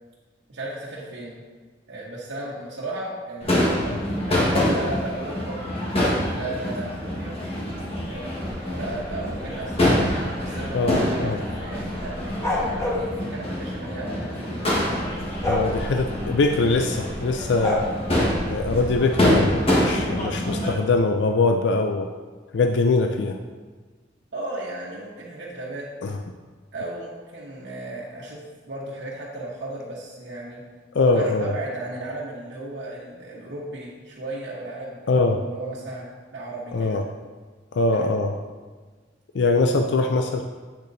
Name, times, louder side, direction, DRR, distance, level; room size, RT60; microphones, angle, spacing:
voice 1, 0.5-1.4 1.9-4.0 4.3-5.6 6.3-7.4 8.1-8.4 8.7-9.9 10.4-14.8 24.3-26.1 26.7-30.6 31.0-37.0 37.9-38.2, right 2 dB, 75° right, -6 dB, 1.1 m, -35 dB
Crowd / Fireworks, 3.4-20.7, left 1 dB, 35° left, 1.4 m, -25 dB
voice 2, 10.7-11.4 15.5-17.8 18.5-22.1 22.5-23.4 26.0-26.2 30.9-31.5 35.1-35.4 36.7-37.0 37.7-38.3 39.3-40.4, left 3 dB, 70° left, 5 dB, 0.4 m, -22 dB
sound 1, 12.4-13.1 15.4-15.7 17.6-17.8, left 2 dB, 15° left, 1.4 m, -24 dB
8.1 x 6.5 x 2.7 m, 1.4 s
head